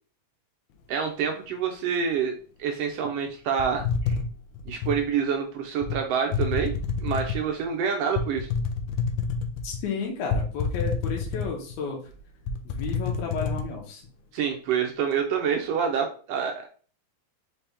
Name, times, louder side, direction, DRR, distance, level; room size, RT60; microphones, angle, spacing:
voice 1, 0.9-4.2 4.7-6.7 7.0-8.5 14.3-16.7, right 7 dB, 80° right, 4 dB, 1.4 m, -27 dB
sound 1, 3.6-5.0 5.8-6.0 6.3-7.5 8.2-9.8 10.3-11.7 12.1-12.2 12.5-13.7, left 5 dB, 85° left, 2.0 m, -28 dB
voice 2, 9.6-12.0 12.6-14.0, left 4 dB, 70° left, -1 dB, 2.0 m, -32 dB
5.2 x 2.8 x 3.3 m, 0.40 s
omnidirectional pair, 3.4 m